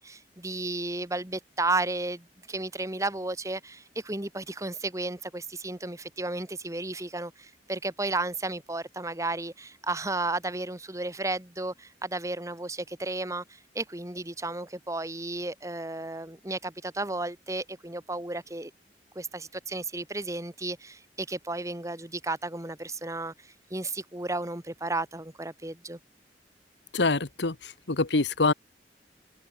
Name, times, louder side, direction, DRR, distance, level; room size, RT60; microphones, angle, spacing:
voice 1, 0.0-18.7 19.2-26.0, right 2 dB, 20° right, 1.8 m, -33 dB
voice 2, 26.9-28.5, left 3 dB, 90° left, 1.4 m, -25 dB
head